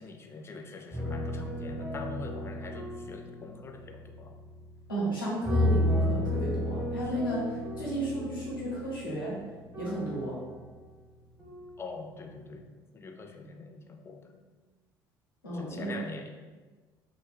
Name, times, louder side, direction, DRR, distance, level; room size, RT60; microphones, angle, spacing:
voice 1, 0.0-4.4 7.5-7.7 11.8-12.7 12.9-14.4 15.5-16.3, left 3 dB, 25° left, 4 dB, 0.3 m, -43 dB
mysterious piano, 0.9-5.0 5.4-10.9 11.4-11.9, left 1 dB, 20° right, 1.0 m, -33 dB
voice 2, 4.9-9.4 9.8-10.4 15.4-15.9, right 1 dB, 85° left, -6 dB, 0.6 m, -33 dB
2.5 x 2.3 x 2.2 m, 1.3 s
figure-of-eight pair, 55°, 11 cm